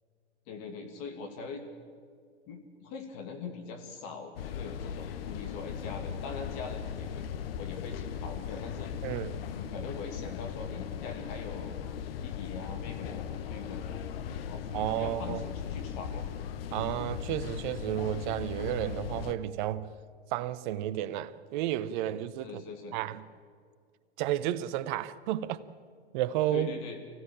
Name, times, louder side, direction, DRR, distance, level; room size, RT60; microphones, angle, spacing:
voice 1, 0.5-1.6 2.5-7.2 7.6-8.9 9.5-11.8 12.2-16.3 22.4-23.0 26.5-27.0, left 4 dB, 40° left, 2.6 m, -42 dB
sound 1, 4.4-19.4, left 8 dB, 55° left, 1.3 m, -38 dB
voice 2, 9.0-9.4 14.7-15.4 16.7-19.9 20.3-22.6 22.9-23.3 24.2-25.6 26.1-26.7, right 12 dB, 45° right, 1.0 m, -32 dB
24.5 x 16.0 x 8.9 m
hypercardioid pair, 110°, 34 cm